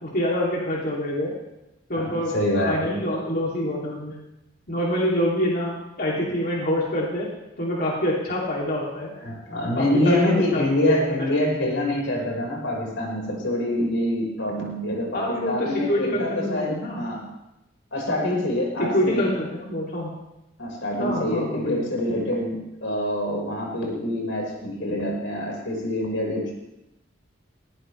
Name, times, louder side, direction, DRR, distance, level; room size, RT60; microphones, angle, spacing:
voice 1, 0.0-1.3 1.9-2.3 2.7-4.1 4.7-7.3 7.6-9.1 9.7-11.3 15.1-17.0 18.8-20.1 21.0-21.8, left 1 dB, 50° left, -4 dB, 3.1 m, -26 dB
voice 2, 1.9-3.0 9.2-17.3 17.9-19.3 20.6-26.5, left 1 dB, 85° left, -1 dB, 5.3 m, -25 dB
20.5 x 17.5 x 3.4 m, 0.91 s
head